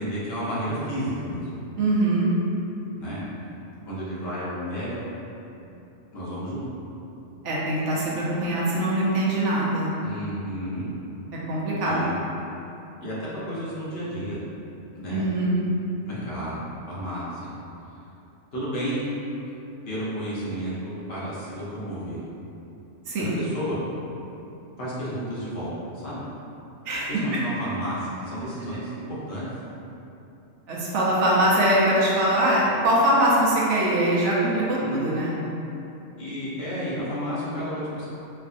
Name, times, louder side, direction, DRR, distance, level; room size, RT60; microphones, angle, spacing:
voice 1, 0.0-1.5 3.0-3.2 3.9-5.1 6.1-6.6 10.0-10.9 11.8-12.2 13.0-14.4 14.9-15.3 16.1-16.6 16.9-17.5 18.5-19.0 19.9-22.2 23.2-23.8 24.8-26.2 27.1-29.4 34.8-35.3 36.2-38.1, equal, 55° left, -9 dB, 1.0 m, -32 dB
voice 2, 1.8-2.3 7.4-9.9 11.5-12.0 15.1-15.6 23.1-23.3 26.9-27.4 30.7-35.3, right 1 dB, 70° right, -6 dB, 1.0 m, -22 dB
4.4 x 2.5 x 2.4 m, 2.8 s
omnidirectional pair, 1.3 m